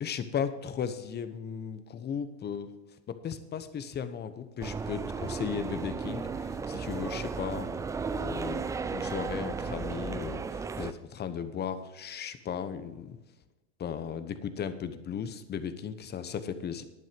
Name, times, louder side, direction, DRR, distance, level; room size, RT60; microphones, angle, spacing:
voice 1, 0.0-2.7 3.1-7.8 8.2-8.7 8.9-13.2 13.8-16.8, left 7 dB, 30° left, 11 dB, 1.0 m, -36 dB
sound 1, 4.6-10.9, right 5 dB, 10° right, 0.3 m, -34 dB
10.5 x 9.2 x 5.2 m, 1.1 s
supercardioid pair, 105°, 35 cm